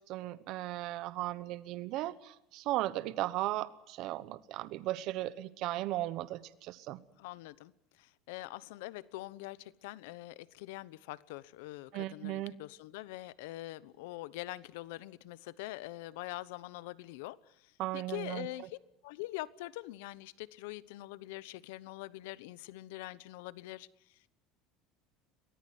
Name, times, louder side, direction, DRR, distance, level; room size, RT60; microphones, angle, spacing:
voice 1, 0.1-7.0 11.9-12.5 17.8-18.5, right 16 dB, 55° right, 14 dB, 1.1 m, -36 dB
voice 2, 7.2-18.8 19.0-24.3, left 18 dB, 85° left, 18 dB, 1.0 m, -44 dB
23.5 x 18.5 x 9.5 m, 0.82 s
cardioid pair, 140°, 0 cm